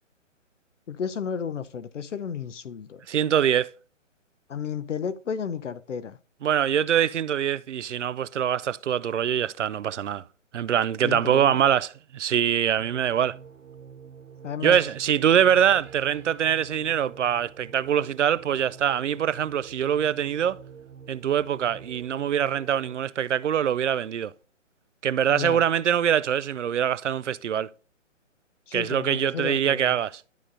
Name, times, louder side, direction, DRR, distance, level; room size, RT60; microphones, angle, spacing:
voice 1, 0.9-3.0 4.5-6.2 11.0-11.6 14.4-14.8 25.3-25.6 28.7-29.9, left 7 dB, 70° left, 0.8 m, -32 dB
voice 2, 3.1-3.7 6.4-10.2 10.5-13.4 14.6-20.6 21.1-24.3 25.0-27.7 28.7-30.2, right 9 dB, 70° right, 0.6 m, -24 dB
sound 1, 12.8-23.0, right 7 dB, 85° right, 1.1 m, -47 dB
12.5 x 4.9 x 2.6 m
figure-of-eight pair, 140°, 38 cm